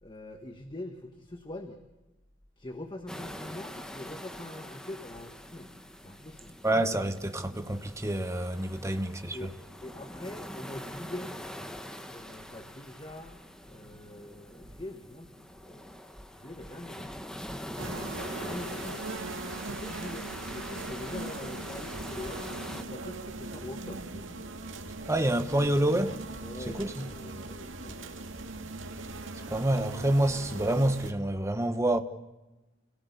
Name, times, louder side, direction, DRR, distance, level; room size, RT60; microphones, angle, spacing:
voice 1, 0.0-1.8 2.6-5.7 6.0-6.6 9.3-9.5 9.8-11.4 12.0-15.9 16.3-17.1 18.4-19.0 19.5-22.4 22.7-24.3 26.4-28.6, left 1 dB, 25° left, 1.5 m, -44 dB
sound 1, 3.1-22.8, equal, 5° left, 1.6 m, -43 dB
voice 2, 6.6-9.4 25.1-26.2 26.8-26.9 29.5-32.0, right 1 dB, 15° right, 1.3 m, -27 dB
sound 2, 17.8-31.1, right 2 dB, 75° right, 2.1 m, -40 dB
29.5 x 18.0 x 8.3 m
head